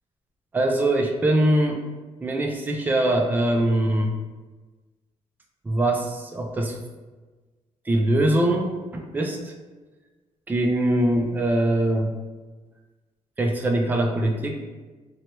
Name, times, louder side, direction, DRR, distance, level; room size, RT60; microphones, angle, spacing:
voice 1, 0.5-1.9 2.2-4.1 5.6-6.8 7.8-9.5 10.5-12.1 13.4-14.6, right 1 dB, 15° right, 2 dB, 0.3 m, -22 dB
4.3 x 2.1 x 3.1 m, 1.3 s
wide cardioid pair, 155°, 12 cm